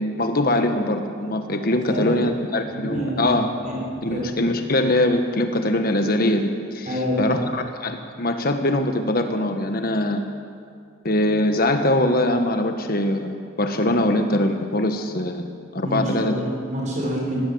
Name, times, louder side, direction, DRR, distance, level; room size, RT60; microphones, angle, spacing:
voice 1, 0.0-3.5 4.0-6.5 6.7-10.2 11.0-16.3, left 1 dB, 50° left, 6 dB, 1.4 m, -22 dB
voice 2, 2.7-3.3 3.6-3.8 4.1-4.2 6.9-7.4 15.8-17.4, equal, 40° right, -3 dB, 6.6 m, -27 dB
20.0 x 17.0 x 8.0 m, 2.2 s
head